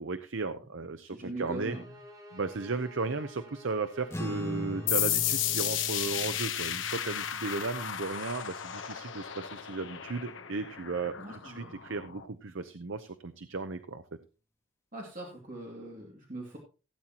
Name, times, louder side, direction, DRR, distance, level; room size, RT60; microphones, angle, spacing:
voice 1, 0.0-1.7 2.3-14.0, right 4 dB, 80° right, 10 dB, 0.7 m, -35 dB
voice 2, 1.0-2.0 11.2-11.7 14.9-16.6, right 2 dB, 40° right, -1 dB, 2.4 m, -41 dB
sound 1, 1.5-6.4, left 1 dB, 15° right, 2.3 m, -51 dB
sound 2, 4.1-10.7, left 1 dB, 15° left, 1.4 m, -42 dB
sound 3, 4.9-12.2, left 11 dB, 80° left, 1.0 m, -33 dB
16.5 x 8.9 x 2.9 m, 0.33 s
head